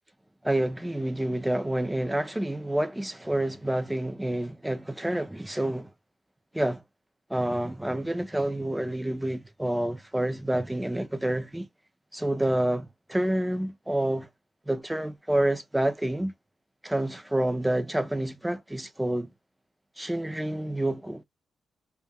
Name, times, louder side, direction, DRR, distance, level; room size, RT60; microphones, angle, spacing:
voice 1, 0.4-5.9 6.5-6.8 7.3-11.7 12.1-14.3 14.7-16.3 16.8-19.3 20.0-21.2, right 1 dB, 5° right, 0.3 m, -28 dB
2.1 x 2.1 x 3.3 m
cardioid pair, 150°, 0 cm